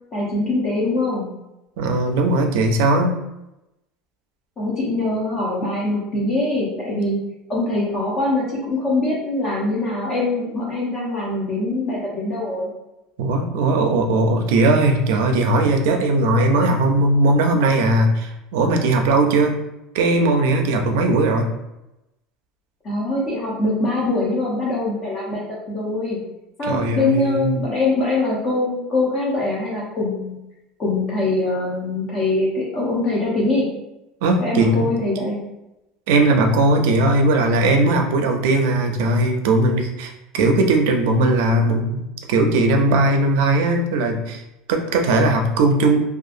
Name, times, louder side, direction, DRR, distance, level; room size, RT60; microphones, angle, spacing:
voice 1, 0.1-1.3 4.6-7.2 7.5-12.7 22.8-26.2 26.6-30.4 30.8-33.7 34.4-35.4, left 2 dB, 25° left, -5 dB, 0.5 m, -23 dB
voice 2, 1.8-3.2 13.2-19.6 19.9-21.5 26.7-27.6 34.2-34.9 36.1-44.4 44.7-46.0, right 2 dB, 75° right, 4 dB, 0.4 m, -18 dB
2.7 x 2.3 x 2.4 m, 0.92 s
cardioid pair, 180°, 0 cm